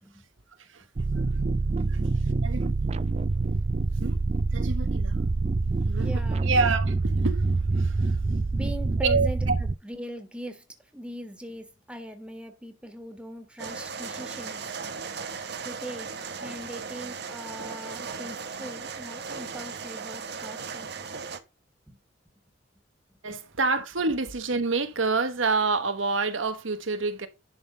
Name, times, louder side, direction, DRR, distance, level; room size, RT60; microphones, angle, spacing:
sound 1, 1.0-9.7, right 3 dB, 35° right, 0.4 m, -26 dB
voice 1, 1.9-2.7 4.0-4.2 4.5-5.1 5.8-7.4 7.8-8.1 9.0-9.5 23.2-27.3, right 4 dB, 85° right, 1.3 m, -28 dB
voice 2, 6.0-6.5 8.5-10.7 10.9-14.7 15.6-20.9 21.9-22.0 23.3-23.4, equal, 5° right, 1.6 m, -41 dB
sound 2, 13.6-21.4, right 5 dB, 55° right, 1.1 m, -37 dB
11.0 x 3.7 x 6.6 m
head